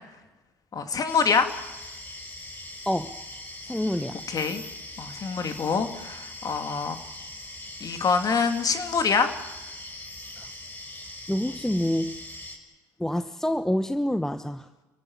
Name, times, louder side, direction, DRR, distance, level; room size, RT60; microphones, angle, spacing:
voice 1, 0.7-1.5 4.3-4.6 5.0-7.0 7.8-9.3, left 5 dB, 40° left, 7 dB, 2.8 m, -25 dB
sound 1, 1.1-12.6, left 1 dB, 20° left, 5.5 m, -41 dB
voice 2, 2.9-3.2 3.7-4.2 10.4-10.5 11.3-12.1 13.0-14.8, left 1 dB, 5° left, 11 dB, 1.0 m, -27 dB
30.0 x 16.0 x 8.8 m, 1.1 s
hypercardioid pair, 70°, 10 cm